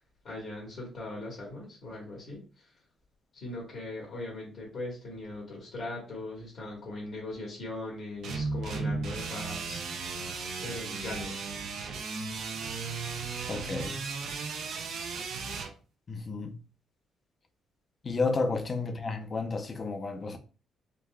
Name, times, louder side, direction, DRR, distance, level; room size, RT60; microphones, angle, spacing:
voice 1, 0.2-2.7 3.3-9.8 10.6-11.4, left 2 dB, 65° left, 1.3 m, -40 dB
sound 1, 8.2-15.7, right 4 dB, 75° right, 0.6 m, -35 dB
voice 2, 13.5-14.0 16.1-16.6 18.0-20.4, left 3 dB, 40° left, 0.5 m, -31 dB
3.9 x 2.3 x 2.2 m
cardioid pair, 90°, 0 cm